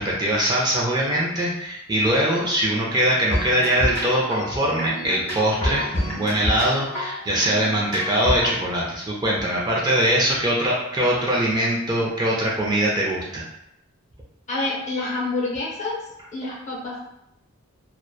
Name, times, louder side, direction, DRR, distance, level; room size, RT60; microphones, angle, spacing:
voice 1, 0.0-13.4, right 1 dB, 20° right, -4 dB, 0.4 m, -22 dB
sound 1, 3.3-8.6, left 1 dB, 10° left, 1.0 m, -28 dB
voice 2, 14.5-16.0 16.3-17.0, left 2 dB, 35° left, -4 dB, 0.7 m, -27 dB
2.8 x 2.1 x 2.2 m, 0.81 s
head